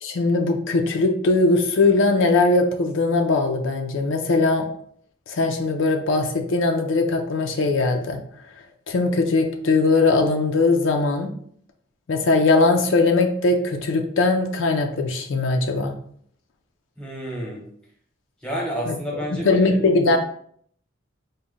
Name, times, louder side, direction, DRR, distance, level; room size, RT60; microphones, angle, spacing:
voice 1, 0.0-4.7 5.3-8.2 8.9-11.3 12.1-15.9 18.9-19.0 19.3-20.2, left 3 dB, 75° left, 4 dB, 0.4 m, -20 dB
voice 2, 17.0-17.6 18.4-20.0, right 1 dB, 5° left, -2 dB, 0.8 m, -30 dB
4.0 x 2.1 x 3.6 m, 0.63 s
head